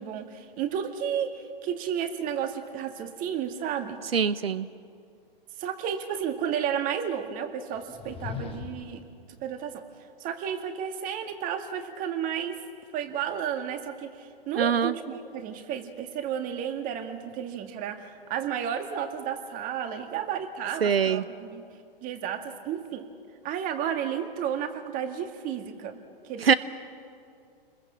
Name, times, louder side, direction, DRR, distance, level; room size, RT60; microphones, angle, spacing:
voice 1, 0.0-4.0 5.6-9.1 9.4-9.8 10.2-12.6 12.9-21.7 22.0-23.1 23.4-26.0 26.2-26.6, right 8 dB, 30° right, 7 dB, 2.0 m, -32 dB
voice 2, 4.1-4.7 14.6-14.9 20.8-21.2 26.4-26.5, right 7 dB, 90° right, 15 dB, 0.8 m, -23 dB
sound 1, 7.7-9.1, left 7 dB, 20° left, 1.6 m, -39 dB
27.5 x 21.5 x 7.2 m, 2.4 s
hypercardioid pair, 125°, 29 cm